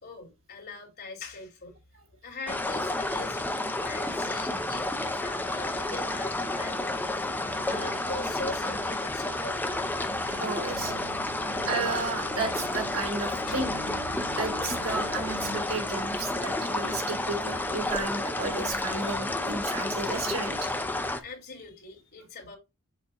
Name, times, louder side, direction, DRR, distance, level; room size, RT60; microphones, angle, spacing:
voice 1, 0.0-9.8 13.5-13.7 21.2-22.6, left 3 dB, 50° left, 2.7 m, -42 dB
sound 1, 2.5-21.2, left 2 dB, 10° left, 0.7 m, -31 dB
sound 2, 5.5-15.6, right 1 dB, 50° right, 1.4 m, -44 dB
voice 2, 10.4-11.0 11.6-13.8 14.3-20.7, right 3 dB, 75° right, 2.8 m, -33 dB
7.0 x 2.8 x 5.0 m
head